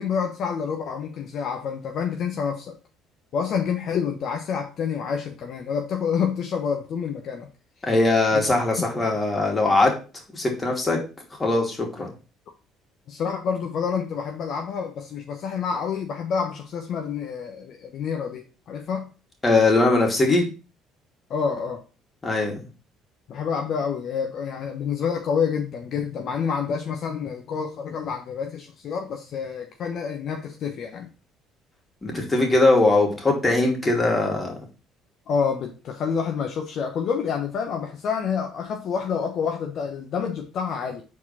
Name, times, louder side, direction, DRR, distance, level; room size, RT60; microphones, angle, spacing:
voice 1, 0.0-2.7 3.3-7.5 8.3-8.4 13.1-19.1 21.3-21.8 23.3-31.1 35.3-41.0, left 6 dB, 60° left, 3 dB, 0.9 m, -28 dB
voice 2, 7.8-9.9 10.3-11.0 11.4-12.1 19.4-20.5 22.2-22.6 32.0-34.5, left 2 dB, 25° left, 1 dB, 2.5 m, -20 dB
4.9 x 4.2 x 5.4 m, 0.33 s
supercardioid pair, 75°, 0 cm